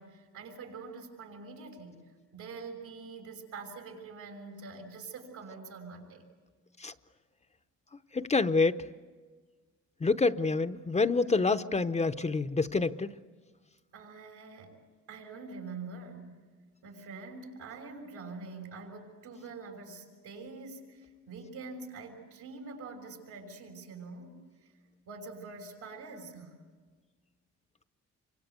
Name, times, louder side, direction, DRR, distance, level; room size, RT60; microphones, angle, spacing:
voice 1, 0.0-2.0 2.3-6.2 13.9-14.7 15.1-16.3 16.8-24.4 25.1-26.5, right 4 dB, 90° right, 1 dB, 6.2 m, -45 dB
voice 2, 8.1-8.8 10.0-13.1, left 3 dB, 20° left, 10 dB, 0.7 m, -27 dB
27.5 x 24.5 x 8.3 m, 1.4 s
cardioid pair, 90°, 30 cm